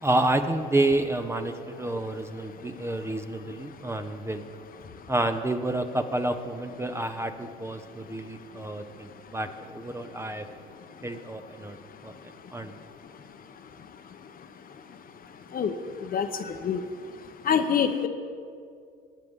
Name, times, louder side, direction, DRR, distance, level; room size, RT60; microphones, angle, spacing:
voice 1, 0.0-4.4 5.1-10.5 11.0-11.8 12.0-12.8, right 2 dB, 15° right, 7 dB, 0.8 m, -29 dB
voice 2, 17.5-18.1, left 7 dB, 45° left, 7 dB, 1.0 m, -24 dB
21.0 x 9.5 x 3.7 m, 2.3 s
supercardioid pair, 80°, 20 cm